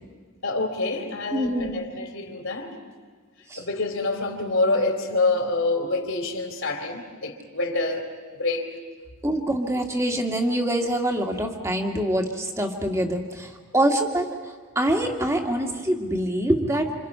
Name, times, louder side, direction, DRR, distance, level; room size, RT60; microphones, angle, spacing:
voice 1, 0.4-2.7 3.6-8.1 8.4-8.7, left 2 dB, 65° left, 3 dB, 3.4 m, -26 dB
voice 2, 1.3-1.8 3.5-3.6 9.2-14.3 14.8-16.9, right 1 dB, 15° right, 3 dB, 2.0 m, -25 dB
27.5 x 27.5 x 5.6 m, 1.5 s
head